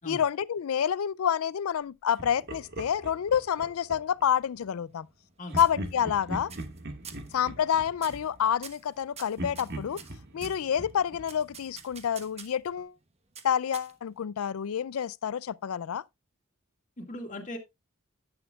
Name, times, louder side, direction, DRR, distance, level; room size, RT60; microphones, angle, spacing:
voice 1, 0.1-5.1 5.6-6.5 7.3-10.0 10.3-12.9 13.4-16.0, left 8 dB, 75° left, 0.4 m, -28 dB
Laughter, 2.2-4.3 5.5-9.0 9.4-12.1, right 1 dB, 50° right, 1.6 m, -41 dB
sound 1, 4.4-5.3 5.6-6.2 6.5-6.8 7.0-7.3 8.0-8.3 8.6-10.6 11.3-12.7 13.4-14.2, right 7 dB, 30° right, 1.1 m, -46 dB
voice 2, 17.0-17.6, left 1 dB, 35° left, 2.0 m, -39 dB
11.0 x 8.9 x 2.3 m
head